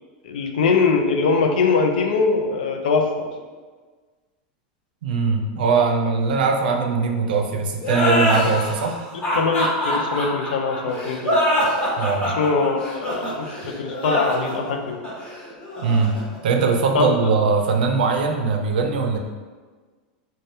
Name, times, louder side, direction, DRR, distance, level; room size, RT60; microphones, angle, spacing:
voice 1, 0.2-3.3 9.1-11.4 12.2-15.0 16.9-17.1, left 4 dB, 85° left, 3 dB, 0.4 m, -22 dB
voice 2, 5.0-9.0 12.0-12.4 15.8-16.2 16.4-19.2, right 4 dB, 80° right, 3 dB, 0.4 m, -21 dB
sound 1, 7.8-17.1, equal, 25° left, 1.2 m, -24 dB
3.3 x 2.2 x 2.7 m, 1.4 s
supercardioid pair, 120°, 5 cm